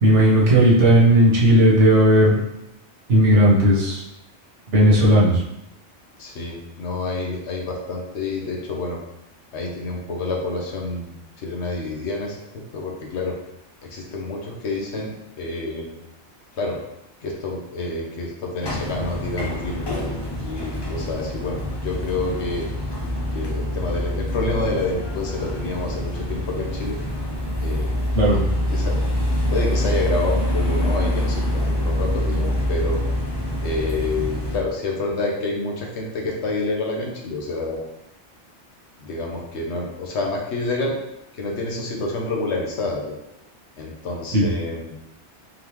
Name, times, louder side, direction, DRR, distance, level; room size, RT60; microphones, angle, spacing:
voice 1, 0.0-2.4 3.1-4.0 4.7-5.4 28.1-28.4 44.3-44.4, right 1 dB, 85° right, -4 dB, 1.3 m, -15 dB
voice 2, 6.2-9.0 9.5-11.1 11.4-12.4 12.7-13.3 13.8-15.9 16.5-16.8 17.2-22.7 23.3-27.0 27.6-27.9 28.3-28.4 28.7-33.0 33.6-37.9 39.0-41.0 41.3-43.2 43.8-44.9, left 2 dB, 75° left, 0 dB, 1.1 m, -28 dB
sound 1, 18.6-34.6, left 1 dB, 30° left, 0.5 m, -25 dB
3.7 x 3.5 x 3.0 m, 0.86 s
omnidirectional pair, 1.2 m